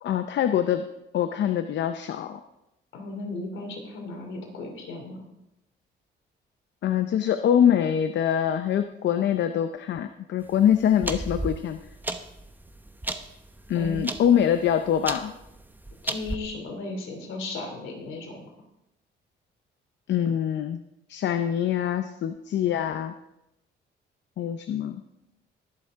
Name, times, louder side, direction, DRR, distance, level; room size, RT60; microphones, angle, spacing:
voice 1, 0.0-0.8 1.1-2.4 6.8-11.8 13.7-15.3 20.1-20.8 21.1-23.1 24.4-25.0, left 9 dB, 65° left, 8 dB, 0.7 m, -24 dB
voice 2, 2.9-5.2 13.7-14.0 16.0-18.5, left 2 dB, 80° left, 2 dB, 2.9 m, -36 dB
sound 1, 10.4-16.4, right 1 dB, 10° right, 0.9 m, -35 dB
20.5 x 7.3 x 3.6 m, 0.88 s
cardioid pair, 90°, 20 cm